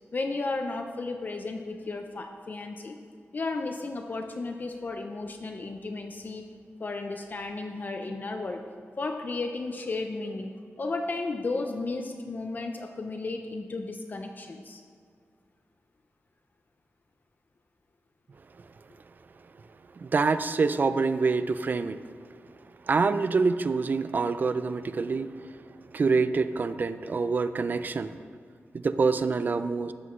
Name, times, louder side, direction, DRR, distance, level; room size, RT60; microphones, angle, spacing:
voice 1, 0.1-3.0 3.3-6.4 6.8-8.6 9.0-10.5 10.8-14.8, left 3 dB, 40° left, 5 dB, 0.5 m, -34 dB
voice 2, 20.0-22.0 22.9-25.3 25.9-28.1 28.7-29.9, right 4 dB, 40° right, 12 dB, 0.4 m, -26 dB
13.0 x 8.0 x 3.1 m, 2.1 s
wide cardioid pair, 160°, 5 cm